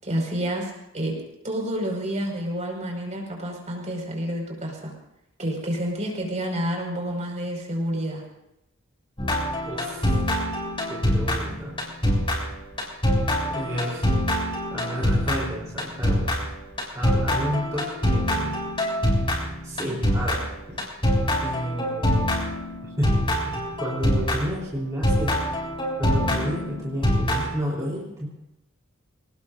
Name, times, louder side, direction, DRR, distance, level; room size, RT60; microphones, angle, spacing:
voice 1, 0.0-1.2 1.4-4.9 5.4-8.2, equal, 35° right, 0 dB, 5.4 m, -29 dB
sound 1, 9.2-24.6 25.0-27.5, equal, 25° left, 6.8 m, -25 dB
voice 2, 9.6-10.2 10.9-11.8 13.5-14.1 14.7-16.5 16.9-18.6 19.6-20.8 21.4-22.4 22.8-23.1 23.5-25.4 26.0-28.3, equal, 15° right, -6 dB, 3.7 m, -31 dB
27.0 x 19.5 x 2.6 m, 0.87 s
head